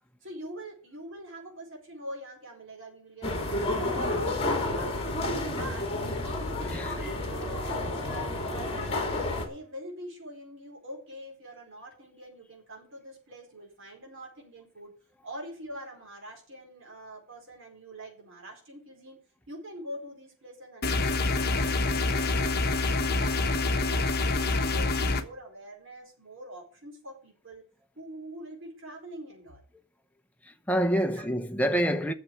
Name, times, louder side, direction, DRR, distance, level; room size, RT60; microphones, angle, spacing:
voice 1, 0.2-4.9 5.4-8.7 9.3-14.9 15.2-19.2 19.5-22.5 22.9-27.6 28.0-29.6 31.1-31.3, equal, 55° right, 4.5 m, -44 dB
sound 1, 3.2-9.5, left 2 dB, 25° left, 2.4 m, -30 dB
voice 2, 6.6-6.9 30.5-32.1, right 1 dB, 5° left, 0.8 m, -27 dB
sound 2, 20.8-25.2, left 3 dB, 45° left, 1.1 m, -26 dB
8.7 x 7.2 x 8.9 m
head